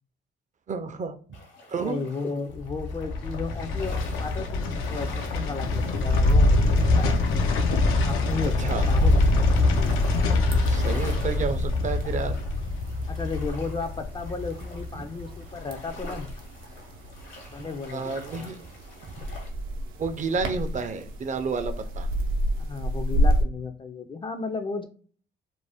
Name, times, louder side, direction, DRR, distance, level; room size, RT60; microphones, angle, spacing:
voice 1, 0.7-1.2 1.7-2.0 8.6-8.9 10.7-12.4 17.9-18.6 19.0-19.4 20.0-22.1, right 5 dB, 40° right, 8 dB, 0.4 m, -30 dB
sound 1, 1.3-19.5, left 2 dB, 70° left, 1.0 m, -46 dB
voice 2, 1.8-7.3 8.0-9.2 9.8-10.1 13.1-16.3 17.5-18.5 22.6-24.9, left 4 dB, 25° left, 7 dB, 0.3 m, -34 dB
sound 2, 2.5-15.7 16.0-16.1, left 2 dB, 85° left, 0.5 m, -24 dB
sound 3, 5.6-23.4, equal, 90° right, 0.6 m, -33 dB
2.5 x 2.1 x 3.4 m, 0.44 s
cardioid pair, 90°, 20 cm